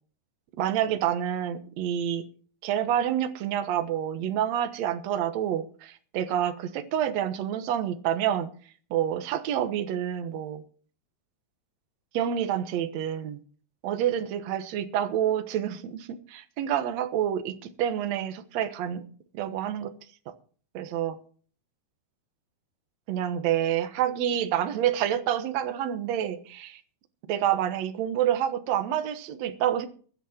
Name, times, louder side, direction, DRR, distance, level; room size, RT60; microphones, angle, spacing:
voice 1, 0.6-2.2 2.6-8.5 8.9-10.6 12.1-13.4 13.8-19.0 19.3-19.9 20.7-21.2 23.1-26.8 27.3-29.9, right 10 dB, 60° right, 2.0 m, -28 dB
22.0 x 8.2 x 4.4 m
omnidirectional pair, 4.1 m